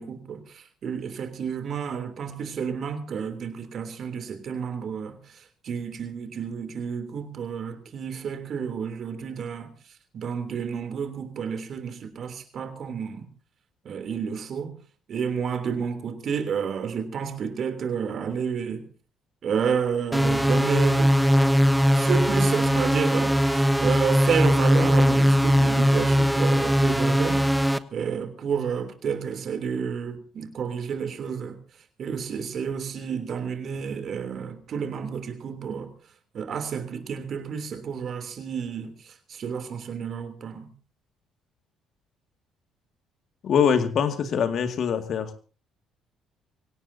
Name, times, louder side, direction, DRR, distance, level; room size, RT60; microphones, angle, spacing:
voice 1, 0.0-9.7 10.1-13.3 13.8-14.8 15.1-18.9 19.4-21.2 21.9-27.4 27.9-31.6 32.0-35.9 36.3-40.7, right 7 dB, 55° right, 3.2 m, -30 dB
sound 1, 20.1-27.8, equal, 5° right, 1.1 m, -20 dB
voice 2, 43.4-45.3, left 7 dB, 60° left, 2.2 m, -23 dB
25.0 x 17.5 x 2.8 m
hypercardioid pair, 55°, 0 cm